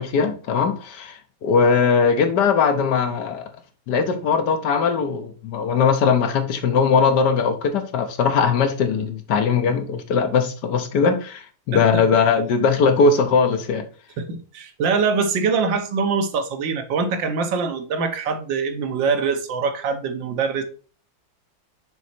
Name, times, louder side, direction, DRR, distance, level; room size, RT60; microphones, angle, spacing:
voice 1, 0.0-3.5 3.9-13.8, left 5 dB, 65° left, 1.4 m, -20 dB
voice 2, 14.2-20.6, right 5 dB, 80° right, 1.6 m, -23 dB
6.3 x 4.0 x 4.3 m
omnidirectional pair, 2.0 m